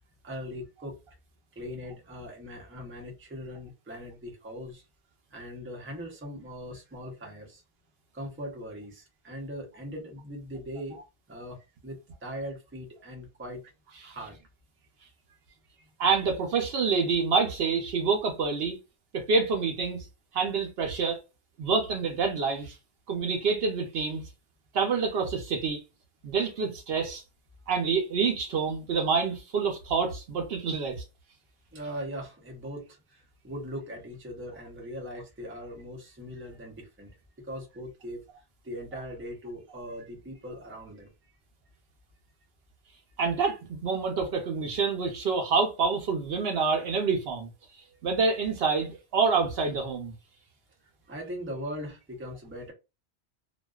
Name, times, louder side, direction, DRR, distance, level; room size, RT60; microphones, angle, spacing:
voice 1, 0.2-1.0 1.6-4.8 5.3-7.6 8.1-11.0 11.3-13.6 14.0-14.4 15.3-15.4 15.8-15.9 31.7-37.2 37.4-38.2 38.6-41.1 51.1-52.7, equal, 15° right, 0.5 m, -40 dB
voice 2, 16.0-18.8 19.1-20.1 20.3-21.2 21.6-22.7 23.1-24.2 24.7-25.8 26.2-27.2 27.7-31.0 43.2-47.5 48.0-50.1, right 5 dB, 70° right, 0.8 m, -27 dB
2.4 x 2.2 x 2.3 m
omnidirectional pair, 1.1 m